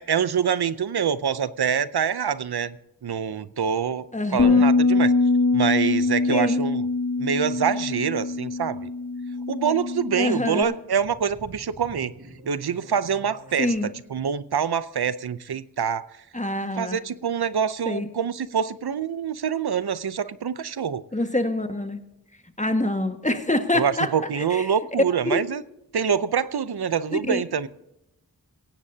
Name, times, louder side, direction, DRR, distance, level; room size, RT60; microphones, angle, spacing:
voice 1, 0.0-2.8 3.0-4.1 4.3-5.1 5.5-6.9 7.2-8.9 9.5-12.1 12.5-13.7 14.1-16.1 16.8-21.0 23.7-25.6 25.9-27.7, right 7 dB, 80° right, 0.6 m, -25 dB
voice 2, 4.1-4.6 6.3-6.6 10.2-10.7 13.6-13.9 16.3-17.0 17.9-18.1 21.1-22.0 22.6-24.1 24.4-24.7 25.2-25.4 27.1-27.4, left 1 dB, 20° left, 1.6 m, -26 dB
Bass guitar, 4.4-10.6, left 3 dB, 50° left, 1.2 m, -23 dB
sound 1, 10.6-13.8, right 1 dB, 55° right, 4.1 m, -46 dB
17.0 x 16.5 x 2.8 m
wide cardioid pair, 45°, 38 cm